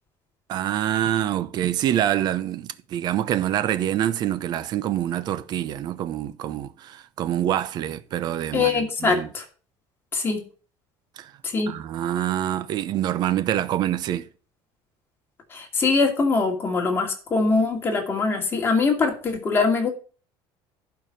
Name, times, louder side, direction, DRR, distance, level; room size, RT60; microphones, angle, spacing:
voice 1, 0.5-9.3 11.2-11.3 11.7-14.3, right 11 dB, 45° right, 0.8 m, -26 dB
voice 2, 8.5-9.4 10.1-10.4 11.4-11.7 15.5-19.9, left 4 dB, 25° left, 2.5 m, -22 dB
11.5 x 4.8 x 6.8 m
cardioid pair, 150°, 10 cm